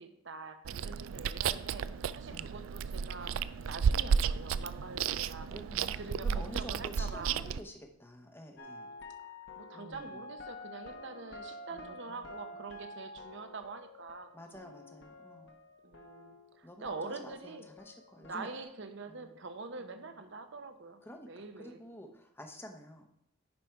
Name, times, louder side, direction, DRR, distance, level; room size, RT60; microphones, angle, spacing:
voice 1, 0.0-1.9 2.1-3.4 3.7-5.5 5.9-7.4 9.2-14.3 15.8-17.7 18.2-21.0 21.3-21.8, right 4 dB, 55° right, 8 dB, 0.8 m, -45 dB
Chewing mastication, 0.7-7.6, right 7 dB, 75° right, 0.3 m, -33 dB
voice 2, 5.2-8.9 9.7-10.2 11.7-12.3 14.3-15.5 16.6-18.5 19.1-19.3 19.8-20.2 21.0-23.1, equal, 10° left, 5 dB, 0.8 m, -50 dB
sound 1, 8.6-16.6 16.8-18.6, left 2 dB, 55° left, 1.1 m, -49 dB
10.5 x 5.1 x 4.6 m, 0.78 s
head